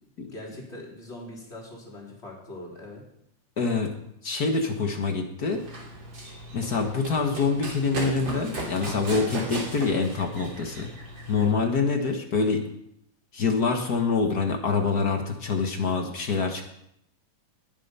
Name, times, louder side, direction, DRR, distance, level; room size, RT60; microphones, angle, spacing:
voice 1, 0.0-3.0 11.5-11.8, left 1 dB, 20° left, -3 dB, 3.7 m, -42 dB
voice 2, 3.6-3.9 4.2-5.6 6.5-10.9 11.3-12.7 13.3-16.6, left 4 dB, 55° left, 4 dB, 1.1 m, -25 dB
Run, 5.5-11.5, right 1 dB, 35° right, 3.5 m, -36 dB
20.5 x 7.7 x 5.6 m, 0.75 s
omnidirectional pair, 3.7 m